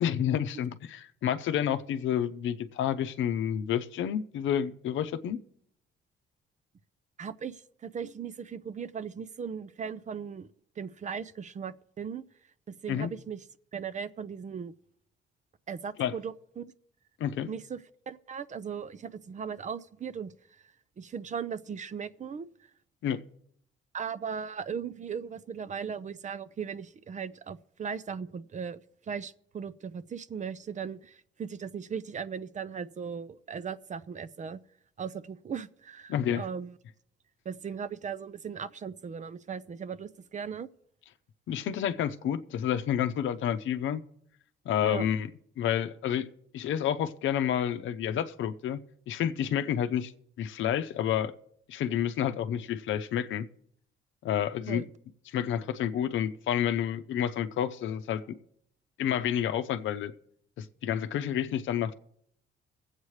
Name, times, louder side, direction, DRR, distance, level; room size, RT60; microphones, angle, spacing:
voice 1, 0.0-5.4 12.9-13.1 16.0-16.2 17.2-17.5 23.0-23.2 36.1-36.4 41.5-44.0 44.7-45.3 45.6-46.3 46.5-48.8 49.1-50.1 50.4-51.3 51.7-53.5 54.2-54.8 55.3-58.2 59.0-60.1 60.6-61.9, left 9 dB, 75° left, 0.7 m, -29 dB
voice 2, 7.2-10.5 10.8-12.2 12.7-13.4 13.7-14.7 15.7-16.7 17.5-17.8 18.1-20.6 21.0-22.5 23.9-34.6 35.0-36.8 37.4-40.7 44.8-45.1 54.7-54.8, right 7 dB, 40° right, 0.5 m, -38 dB
23.5 x 8.1 x 3.2 m
cardioid pair, 90°, 20 cm